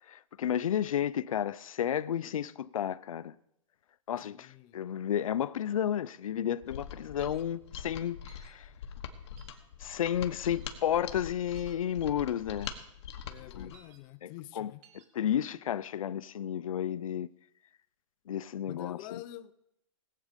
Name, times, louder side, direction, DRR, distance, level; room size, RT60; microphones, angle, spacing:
voice 1, 0.1-3.3 4.1-8.7 9.8-12.7 13.5-13.7 14.2-14.7 15.2-17.3 18.3-19.0, left 10 dB, 90° left, 0.5 m, -32 dB
voice 2, 4.2-4.8 13.2-14.8 18.6-19.5, left 15 dB, 30° left, 0.6 m, -46 dB
Mechanisms, 6.6-13.8, left 8 dB, 55° left, 1.5 m, -43 dB
sound 1, 7.2-7.4 8.3-8.5 9.4-9.6 10.5-10.7 11.5-11.7 12.6-12.8 13.7-14.0 14.8-15.1, right 8 dB, 35° right, 1.8 m, -59 dB
18.0 x 8.4 x 5.1 m
hypercardioid pair, 150°, 17 cm